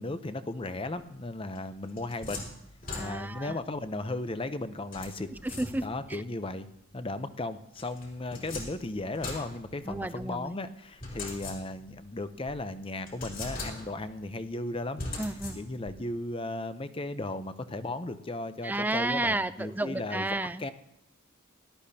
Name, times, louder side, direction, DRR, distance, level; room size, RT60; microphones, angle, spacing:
voice 1, 0.0-2.5 3.0-5.3 5.8-6.7 6.9-15.1 15.6-20.3 20.6-20.7, left 2 dB, 25° left, 11 dB, 0.6 m, -36 dB
sound 1, 1.6-3.5 4.9-6.1 7.8-10.3 11.0-12.0 12.5-12.6 13.1-14.1 15.0-16.0, left 2 dB, 40° left, 3.4 m, -40 dB
voice 2, 2.9-3.6 5.3-6.2 9.8-10.5 15.2-15.6 18.6-20.6, right 2 dB, 10° right, 14 dB, 0.3 m, -32 dB
17.0 x 12.0 x 2.8 m, 0.84 s
head